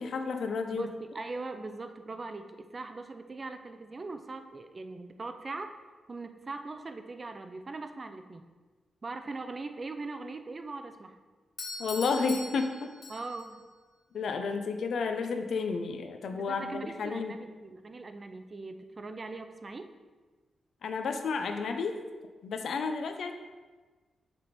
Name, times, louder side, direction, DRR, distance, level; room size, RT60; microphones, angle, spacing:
voice 1, 0.0-0.9 11.8-12.7 14.1-17.4 20.8-22.0 22.4-23.3, left 4 dB, 75° left, 6 dB, 0.5 m, -31 dB
voice 2, 0.7-5.7 6.1-8.4 9.0-11.2 13.1-13.6 16.3-19.9, right 3 dB, 35° right, 7 dB, 0.4 m, -41 dB
Doorbell, 11.6-13.6, left 3 dB, 50° left, 0.8 m, -42 dB
6.5 x 3.5 x 4.1 m, 1.3 s
cardioid pair, 95°, 0 cm